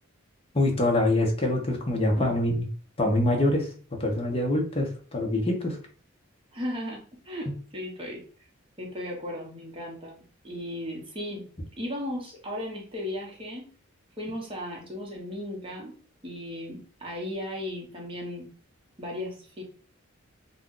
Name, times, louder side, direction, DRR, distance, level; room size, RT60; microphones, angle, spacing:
voice 1, 0.5-2.5 3.0-5.8 7.5-7.6, left 1 dB, 25° left, 1 dB, 0.7 m, -25 dB
voice 2, 6.5-8.2 8.8-11.5 11.8-13.7 14.2-16.0 16.2-18.5 19.0-19.6, left 1 dB, 25° right, -2 dB, 0.9 m, -36 dB
2.6 x 2.3 x 3.7 m, 0.41 s
head